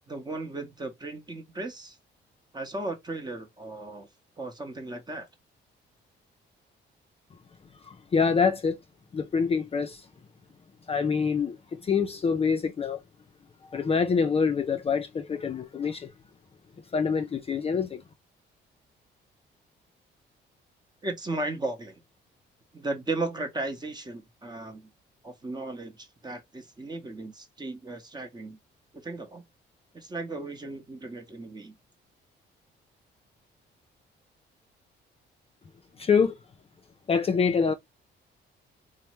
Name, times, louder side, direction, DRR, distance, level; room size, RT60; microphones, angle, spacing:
voice 1, 0.1-2.0 2.5-4.1 4.4-5.3 21.0-22.0 22.7-24.9 25.2-28.6 29.0-29.5 29.9-31.8, right 2 dB, 20° right, 0.8 m, -35 dB
voice 2, 7.9-8.8 9.1-10.0 10.9-11.6 11.8-13.0 13.7-16.1 16.9-18.0 36.0-36.4 37.1-37.7, left 5 dB, 30° left, 0.4 m, -25 dB
3.1 x 2.0 x 2.9 m
cardioid pair, 90°, 20 cm